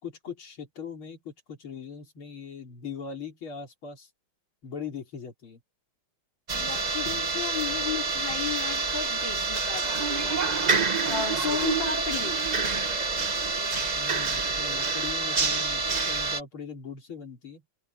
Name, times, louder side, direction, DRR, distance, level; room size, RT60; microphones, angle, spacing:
voice 1, 0.0-4.1 4.6-5.6 11.3-11.6 13.9-17.6, left 6 dB, 85° left, 4.4 m, -40 dB
voice 2, 6.5-12.4, left 7 dB, 60° left, 4.1 m, -34 dB
sound 1, 6.5-16.4, right 4 dB, 35° right, 0.7 m, -27 dB
omnidirectional pair, 2.2 m